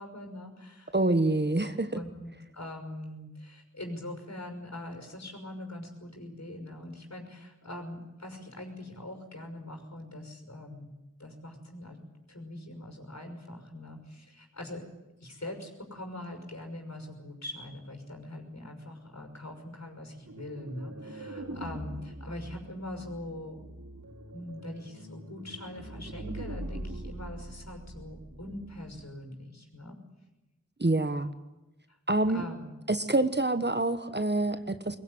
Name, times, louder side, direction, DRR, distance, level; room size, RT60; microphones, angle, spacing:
voice 1, 0.0-0.9 1.9-10.9 11.2-12.0 12.3-14.8 15.2-23.7 24.3-30.0 32.3-32.7, left 1 dB, 60° left, 4 dB, 6.0 m, -42 dB
voice 2, 0.9-1.9 30.8-31.3 32.1-32.4 32.9-35.0, right 2 dB, 35° right, 10 dB, 1.3 m, -26 dB
sound 1, 20.3-29.0, right 1 dB, 65° right, 5.5 m, -43 dB
21.5 x 20.5 x 9.7 m, 1.0 s
wide cardioid pair, 45°, 31 cm